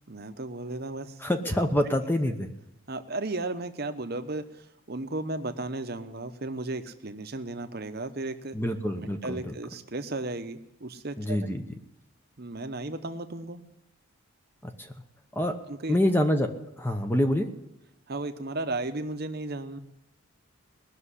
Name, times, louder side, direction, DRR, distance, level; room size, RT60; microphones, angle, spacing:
voice 1, 0.1-1.2 2.9-8.6 9.0-11.5 12.4-13.6 15.7-16.0 18.1-19.8, right 2 dB, 45° right, 8 dB, 0.9 m, -35 dB
voice 2, 1.2-2.5 8.5-9.5 11.2-11.6 14.6-14.7 15.4-15.6 15.9-16.5 16.8-17.5, left 1 dB, 10° left, 6 dB, 0.9 m, -26 dB
19.0 x 6.7 x 9.9 m, 0.88 s
head